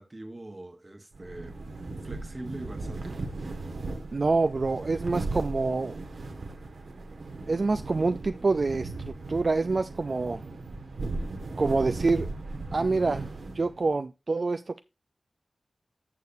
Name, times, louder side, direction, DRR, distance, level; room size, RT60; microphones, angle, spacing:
voice 1, 0.0-1.6 1.9-3.2, right 1 dB, 30° right, 1.1 m, -42 dB
sound 1, 1.1-13.9, right 2 dB, 85° right, 1.4 m, -37 dB
voice 2, 4.1-6.0 7.5-10.4 11.6-12.3 12.7-13.3 13.5-14.8, right 3 dB, 55° right, 0.4 m, -26 dB
13.5 x 6.7 x 2.6 m
wide cardioid pair, 65°, 0 cm